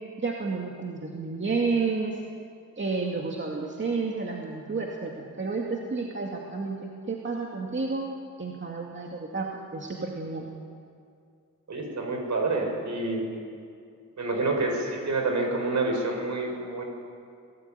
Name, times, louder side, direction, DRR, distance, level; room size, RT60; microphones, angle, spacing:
voice 1, 0.2-2.2 2.8-8.1 8.4-10.5, right 4 dB, 35° right, -1 dB, 2.3 m, -31 dB
voice 2, 11.7-13.2 14.2-16.8, right 2 dB, 60° right, 2 dB, 5.8 m, -28 dB
27.5 x 18.0 x 9.2 m, 2.3 s
wide cardioid pair, 160°, 32 cm